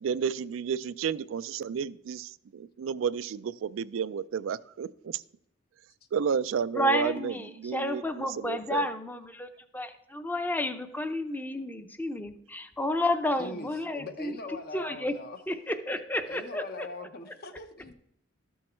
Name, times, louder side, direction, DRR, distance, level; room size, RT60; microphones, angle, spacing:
voice 1, 0.0-5.2 6.1-8.9, right 7 dB, 80° right, 16 dB, 0.4 m, -32 dB
voice 2, 6.7-9.5 9.7-14.3 14.7-15.1 15.5-16.9, left 1 dB, 10° left, 9 dB, 0.6 m, -31 dB
voice 3, 13.4-15.4 16.3-17.9, left 2 dB, 50° left, 8 dB, 0.8 m, -41 dB
13.0 x 6.3 x 4.4 m, 0.76 s
head